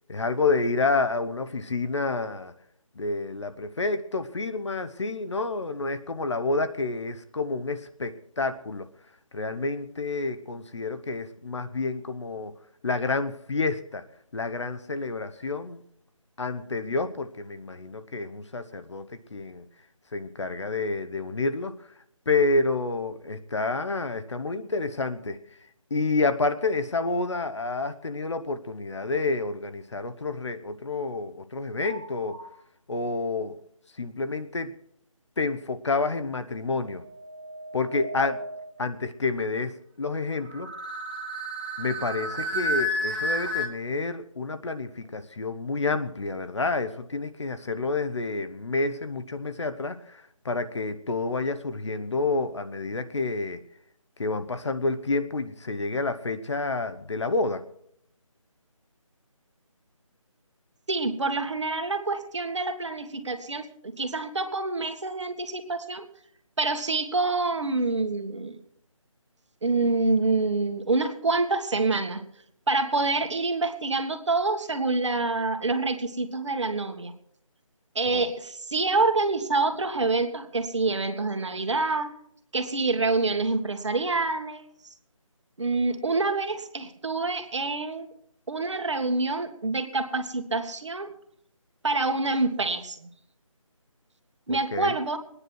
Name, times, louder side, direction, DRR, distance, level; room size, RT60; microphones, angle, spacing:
voice 1, 0.1-2.5 3.0-8.9 9.3-12.5 12.8-14.0 14.3-15.8 16.4-19.6 20.1-21.7 22.3-25.4 25.9-32.4 32.9-33.6 34.0-34.7 35.4-37.0 37.7-38.4 38.8-40.7 41.8-53.6 54.2-57.6 78.1-78.3 94.5-94.9, left 3 dB, 55° left, 10 dB, 1.0 m, -29 dB
sound 1, 31.8-32.5 36.8-38.8 40.5-43.7, equal, 15° right, 1.3 m, -32 dB
voice 2, 60.9-66.0 66.6-68.6 69.6-72.2 72.7-77.1 78.0-82.1 82.5-84.6 85.6-88.1 88.5-91.1 91.8-93.1 94.5-95.2, right 3 dB, 60° right, 6 dB, 1.8 m, -27 dB
22.0 x 9.8 x 4.7 m, 0.71 s
figure-of-eight pair, 170°, 17 cm